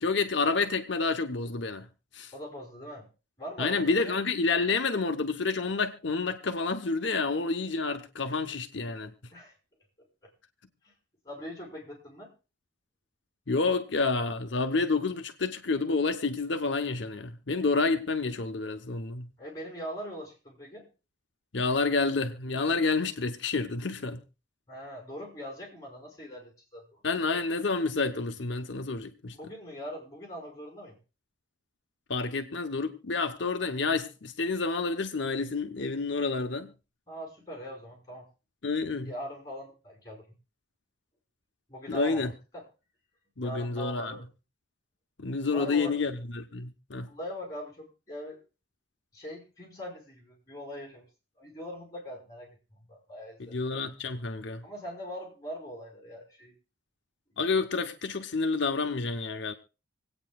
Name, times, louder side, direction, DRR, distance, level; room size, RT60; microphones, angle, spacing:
voice 1, 0.0-1.9 2.1-2.3 3.6-9.1 13.5-19.3 21.5-24.2 27.0-29.3 32.1-36.7 38.6-39.1 41.9-42.3 43.4-44.2 45.2-47.1 53.5-54.6 57.4-59.5, left 4 dB, 65° left, 0.9 m, -29 dB
voice 2, 2.3-3.1 3.4-4.2 8.2-8.4 9.3-9.5 10.8-10.9 11.2-12.3 19.4-20.9 24.7-27.0 29.3-31.0 37.1-38.2 38.9-40.2 41.7-42.6 43.4-44.3 45.5-46.0 47.0-48.4 49.1-51.1 51.4-53.6 54.6-56.5, equal, 15° left, 5.0 m, -41 dB
26.5 x 8.8 x 2.4 m
head